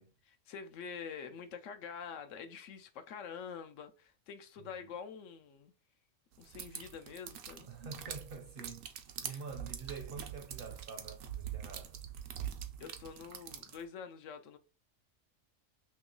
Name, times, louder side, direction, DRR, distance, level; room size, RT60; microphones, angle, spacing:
voice 1, 0.3-5.7 6.4-7.7 9.3-9.4 12.8-14.6, left 6 dB, 75° left, 0.9 m, -46 dB
voice 2, 4.6-4.9 7.6-12.0, right 5 dB, 55° right, 0.7 m, -47 dB
sound 1, 6.4-13.8, right 9 dB, 85° right, 1.0 m, -44 dB
3.1 x 2.9 x 3.7 m
omnidirectional pair, 1.3 m